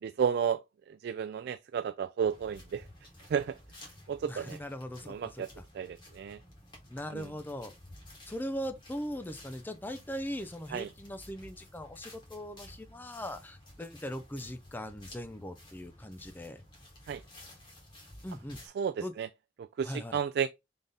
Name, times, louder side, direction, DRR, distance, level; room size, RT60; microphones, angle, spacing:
voice 1, 0.0-2.9 3.3-3.6 4.1-4.6 5.1-5.5 5.7-6.4 7.1-7.3 10.7-10.9 17.1-17.2 18.8-19.3 19.6-20.5, right 7 dB, 65° right, 0.3 m, -32 dB
sound 1, 2.2-18.7, left 1 dB, 25° left, 2.0 m, -53 dB
voice 2, 4.2-5.6 6.9-7.7 8.3-16.6 18.2-18.6 19.0-19.1 19.8-20.2, equal, 10° left, 0.5 m, -40 dB
3.9 x 3.5 x 3.8 m
head